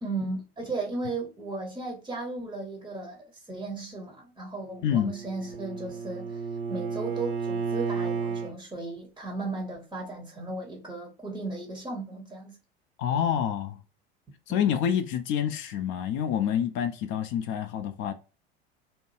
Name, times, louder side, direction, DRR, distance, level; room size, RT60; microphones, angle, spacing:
voice 1, 0.0-12.6, right 2 dB, 10° right, 0.7 m, -36 dB
Bowed string instrument, 4.7-8.5, right 5 dB, 80° right, 0.9 m, -32 dB
voice 2, 13.0-13.8 14.5-18.1, left 9 dB, 40° left, 0.5 m, -27 dB
2.8 x 2.2 x 3.0 m
figure-of-eight pair, 75°, 31 cm